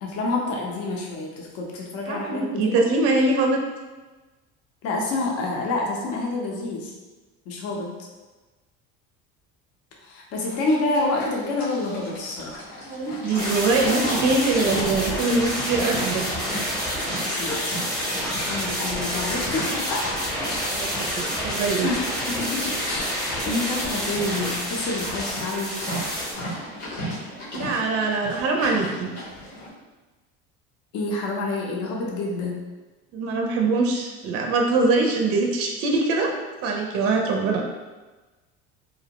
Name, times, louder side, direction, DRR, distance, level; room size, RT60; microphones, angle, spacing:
voice 1, 0.0-2.8 4.8-6.9 7.5-7.9 10.0-12.6 17.1-20.1 21.8-25.8 30.9-32.6, left 2 dB, 55° left, -1 dB, 0.7 m, -28 dB
voice 2, 2.1-3.6 12.9-16.2 20.7-20.9 21.2-21.9 27.5-29.2 33.1-36.3 36.6-37.6, right 3 dB, 55° right, 2 dB, 0.4 m, -23 dB
Livestock farm animals working animals, 10.4-29.7, equal, 85° left, 1.1 m, -36 dB
sound 1, 13.4-26.3, equal, ahead, 0.8 m, -28 dB
2.6 x 2.1 x 2.8 m, 1.2 s
supercardioid pair, 105°, 29 cm